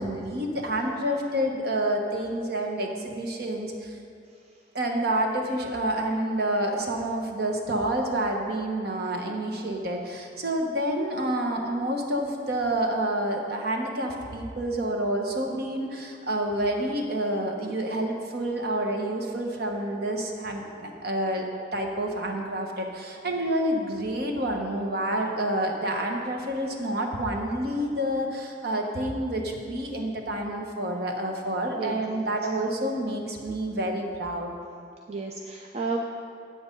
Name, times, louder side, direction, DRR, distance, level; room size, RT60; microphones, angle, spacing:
voice 1, 0.0-4.0 4.7-21.5 21.7-34.5, right 1 dB, 55° right, 2 dB, 1.2 m, -28 dB
voice 2, 31.8-32.4 35.1-36.0, right 3 dB, 35° right, 0 dB, 0.6 m, -33 dB
8.8 x 8.6 x 5.3 m, 2.3 s
head